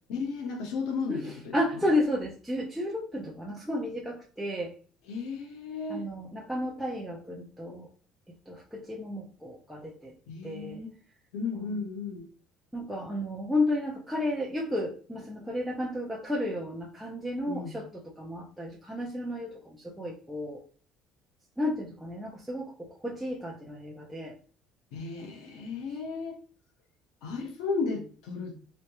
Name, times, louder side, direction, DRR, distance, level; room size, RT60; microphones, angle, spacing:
voice 1, 0.1-1.8 5.1-6.0 10.3-11.0 11.3-12.3 17.5-17.8 24.9-26.4 27.2-28.6, left 4 dB, 80° left, 3 dB, 1.0 m, -34 dB
voice 2, 1.1-4.7 5.9-7.9 8.5-10.1 10.4-10.8 11.5-11.8 12.7-20.6 21.6-24.4, left 1 dB, ahead, -3 dB, 0.5 m, -32 dB
3.6 x 3.3 x 2.9 m, 0.40 s
cardioid pair, 165°, 0 cm